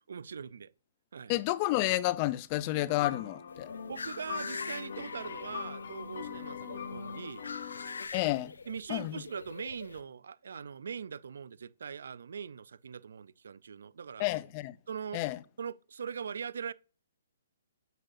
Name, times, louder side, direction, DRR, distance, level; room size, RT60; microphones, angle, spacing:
voice 1, 0.1-0.7 1.1-1.3 3.9-7.5 8.7-14.3 14.9-15.2 15.6-16.7, right 6 dB, 75° right, 0.5 m, -41 dB
voice 2, 1.3-3.7 8.1-8.5 8.9-9.2 14.2-14.7 15.1-15.4, left 17 dB, 35° left, 0.4 m, -30 dB
sound 1, 2.9-8.1, left 7 dB, 65° left, 1.5 m, -41 dB
sound 2, 3.5-10.0, left 4 dB, 85° left, 0.5 m, -45 dB
9.1 x 8.0 x 2.7 m
hypercardioid pair, 145°, 0 cm